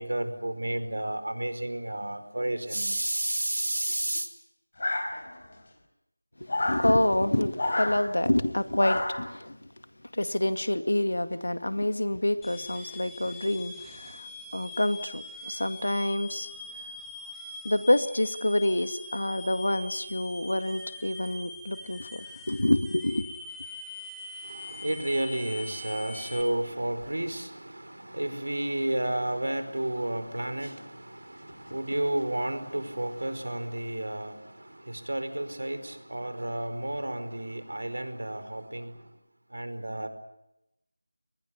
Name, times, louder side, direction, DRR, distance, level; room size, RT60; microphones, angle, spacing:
voice 1, 0.0-4.3 24.5-34.4 34.9-38.9 39.5-40.1, right 1 dB, 75° right, 9 dB, 5.0 m, -31 dB
sound 1, 4.8-5.5 6.5-6.9 7.6-8.0 8.8-9.3, left 2 dB, 40° left, 4.6 m, -29 dB
voice 2, 6.4-9.6 10.1-16.5 17.6-23.3, left 1 dB, 90° left, 10 dB, 2.1 m, -27 dB
sound 2, 12.4-26.4, left 2 dB, ahead, 1.2 m, -43 dB
23.5 x 20.5 x 9.8 m, 0.86 s
figure-of-eight pair, 175°, 0 cm